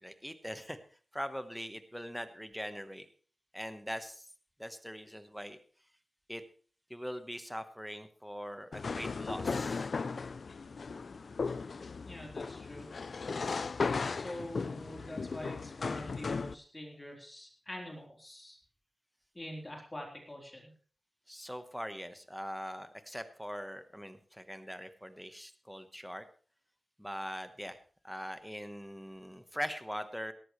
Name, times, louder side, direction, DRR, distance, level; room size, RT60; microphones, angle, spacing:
voice 1, 0.0-0.8 1.1-3.1 3.5-4.3 4.6-5.6 6.3-6.4 6.9-9.9 21.3-26.2 27.0-27.8 28.0-30.3, equal, ahead, 9 dB, 1.2 m, -42 dB
sound 1, 8.7-16.5, left 4 dB, 65° left, 0.5 m, -36 dB
voice 2, 12.0-12.9 14.1-18.6 19.3-20.7, left 1 dB, 20° left, 0 dB, 4.0 m, -45 dB
18.0 x 13.5 x 3.3 m, 0.42 s
wide cardioid pair, 105°, 0 cm